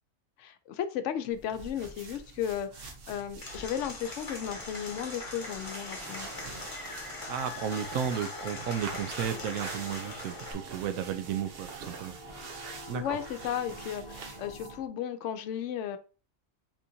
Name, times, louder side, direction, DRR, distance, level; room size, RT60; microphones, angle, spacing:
voice 1, 0.4-6.3 12.9-16.0, left 9 dB, 70° left, 0.9 m, -35 dB
sound 1, 1.3-14.9, right 4 dB, 50° right, 0.9 m, -46 dB
Applause / Crowd, 3.4-10.5, left 2 dB, 25° left, 1.1 m, -41 dB
sound 2, 5.3-14.8, right 1 dB, 30° right, 1.4 m, -52 dB
voice 2, 7.3-12.2 12.9-13.0, right 8 dB, 85° right, 1.0 m, -33 dB
5.4 x 3.6 x 2.7 m
omnidirectional pair, 1.4 m